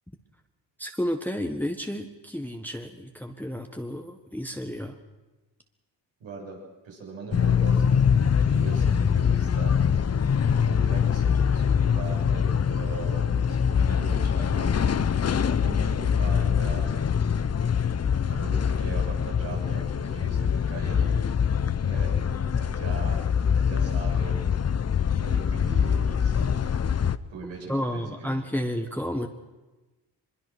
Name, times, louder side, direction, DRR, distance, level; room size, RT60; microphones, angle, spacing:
voice 1, 0.8-5.0 27.7-29.3, equal, 5° left, 4 dB, 1.5 m, -31 dB
voice 2, 6.2-8.0 8.3-10.0 10.6-15.1 15.5-17.0 18.3-21.2 21.8-23.2 23.6-24.4 25.2-26.5 27.3-28.6, right 4 dB, 85° right, -2 dB, 7.8 m, -40 dB
sound 1, 7.3-27.2, left 7 dB, 35° left, 0.8 m, -24 dB
23.0 x 21.5 x 6.3 m, 1.1 s
cardioid pair, 65°, 45 cm